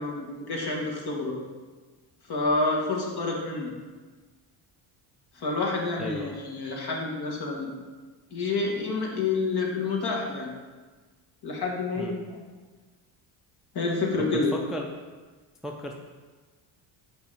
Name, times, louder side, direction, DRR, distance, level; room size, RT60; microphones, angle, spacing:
voice 1, 0.0-1.4 2.3-3.7 5.3-7.7 8.3-10.5 11.4-12.3 13.7-14.5, left 3 dB, 50° left, -1 dB, 1.7 m, -28 dB
voice 2, 6.0-6.4 11.9-12.2 14.2-14.9 15.6-16.0, equal, ahead, 1 dB, 0.5 m, -35 dB
5.2 x 5.1 x 4.9 m, 1.4 s
cardioid pair, 90°, 49 cm